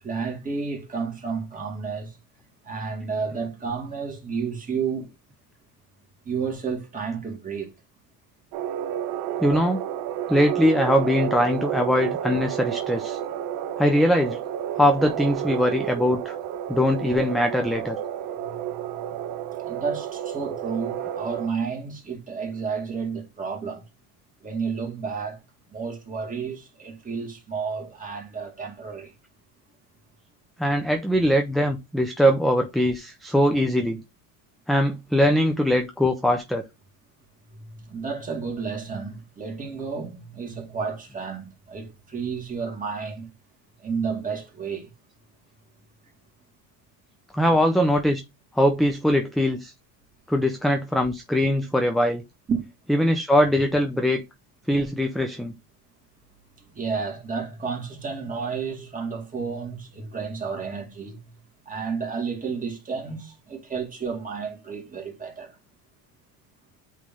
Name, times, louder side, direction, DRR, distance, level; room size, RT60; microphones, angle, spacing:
voice 1, 0.0-2.2 2.6-5.1 6.2-7.7 18.4-23.8 24.4-25.4 25.7-29.1 37.5-43.3 43.8-44.9 52.5-52.6 56.6-61.3 61.7-65.6, right 5 dB, 20° right, 2.2 m, -31 dB
sound 1, 8.5-21.5, right 10 dB, 85° right, 1.0 m, -31 dB
voice 2, 9.4-9.8 10.3-13.2 13.8-14.4 14.7-16.4 16.7-18.0 30.6-34.0 34.7-36.6 47.3-48.2 48.5-49.7 50.3-52.2 52.9-54.2 54.7-55.5, equal, ahead, 0.4 m, -21 dB
8.4 x 3.3 x 3.7 m
cardioid pair, 140°, 42 cm